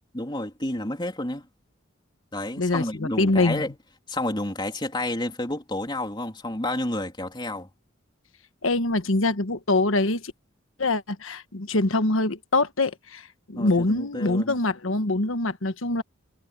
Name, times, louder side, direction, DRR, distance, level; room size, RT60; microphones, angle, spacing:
voice 1, 0.1-1.5 2.3-3.7 4.1-7.7 13.5-14.6, left 1 dB, 20° left, 3.5 m, -30 dB
voice 2, 2.6-3.6 8.6-10.3 10.8-13.2 13.5-16.0, left 2 dB, 80° left, 1.3 m, -24 dB
head